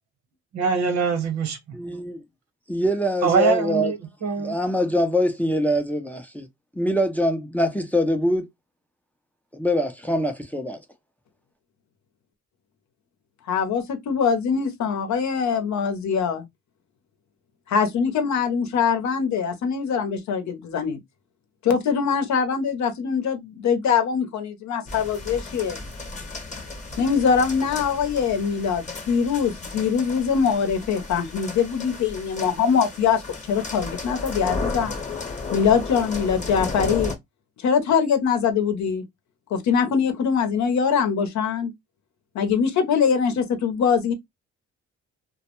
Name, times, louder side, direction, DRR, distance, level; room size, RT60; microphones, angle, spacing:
voice 1, 0.5-1.6 3.2-4.5, right 5 dB, 65° right, 1.1 m, -23 dB
voice 2, 1.7-2.2 2.7-3.9 4.4-6.5 6.8-8.5 9.5-10.8, equal, 5° left, 0.5 m, -23 dB
voice 3, 13.5-16.4 17.7-21.0 21.6-25.8 27.0-33.2 33.5-35.0 35.5-37.1 37.6-39.0 39.5-41.7 42.3-44.1, left 6 dB, 65° left, 0.7 m, -23 dB
sound 1, 24.9-37.2, left 3 dB, 25° left, 0.9 m, -34 dB
2.2 x 2.1 x 2.9 m
cardioid pair, 90°, 30 cm